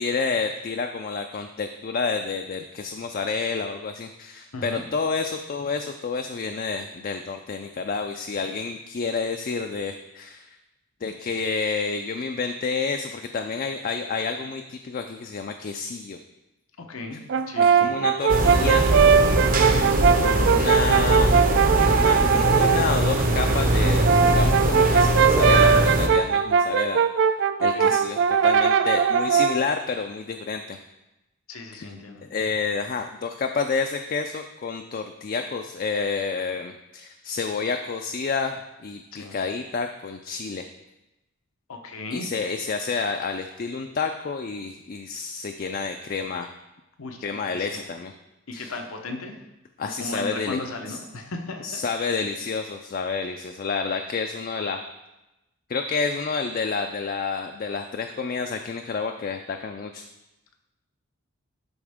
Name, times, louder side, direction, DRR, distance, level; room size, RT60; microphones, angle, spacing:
voice 1, 0.0-10.6 11.0-16.2 17.6-18.9 20.2-21.3 21.8-27.3 27.6-30.8 31.7-31.9 32.3-40.7 42.1-46.5 47.2-48.1 48.5-48.7 49.8-50.6 50.9-51.0 51.6-54.8 55.7-60.0, left 4 dB, 45° left, 5 dB, 0.4 m, -29 dB
voice 2, 4.5-4.8 16.8-17.2 17.5-17.9 20.4-20.7 27.7-27.9 31.5-32.2 39.1-39.4 41.7-42.3 47.0-47.8 48.5-49.3 49.8-51.8, left 2 dB, 90° left, 4 dB, 1.0 m, -36 dB
Brass instrument, 17.3-22.9 23.8-29.7, right 6 dB, 55° right, 0.3 m, -20 dB
sound 1, 18.3-26.1, right 1 dB, 40° right, 0.8 m, -21 dB
12.0 x 4.2 x 3.6 m, 0.95 s
head